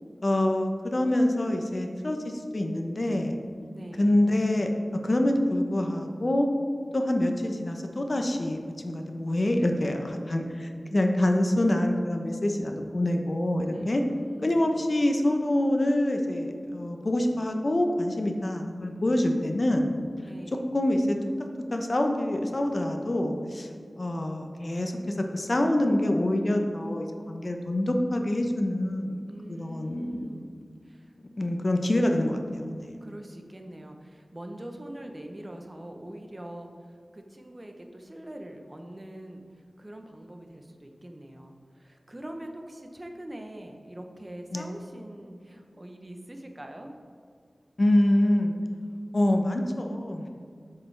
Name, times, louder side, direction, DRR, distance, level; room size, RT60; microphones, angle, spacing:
voice 1, 0.2-3.4 4.0-4.7 5.0-6.5 6.9-14.0 14.4-19.9 20.7-21.2 21.7-23.7 24.0-29.2 29.5-30.2 31.4-32.9 44.5-44.7 47.8-48.6 49.1-50.3, left 1 dB, 50° left, 4 dB, 0.7 m, -26 dB
voice 2, 3.7-4.2 13.7-14.8 20.1-20.7 29.3-30.5 30.9-31.1 33.0-36.7 37.1-39.4 39.8-47.0, right 1 dB, 30° right, 4 dB, 0.8 m, -43 dB
7.3 x 6.7 x 3.3 m, 2.1 s
wide cardioid pair, 60°, 0 cm